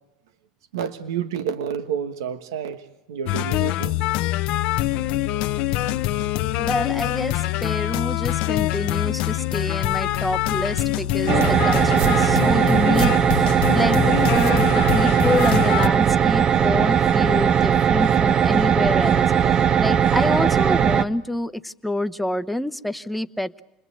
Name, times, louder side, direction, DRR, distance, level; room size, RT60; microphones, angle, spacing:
voice 1, 0.7-4.0, right 8 dB, 90° right, 1.4 m, -29 dB
sound 1, 3.3-15.9, left 15 dB, 65° left, 1.0 m, -24 dB
voice 2, 6.6-23.6, left 1 dB, ahead, 1.0 m, -27 dB
sound 2, 11.3-21.0, right 8 dB, 40° right, 1.0 m, -19 dB
sound 3, 11.8-16.3, right 7 dB, 65° right, 1.9 m, -35 dB
29.0 x 21.5 x 8.4 m
supercardioid pair, 100°, 2 cm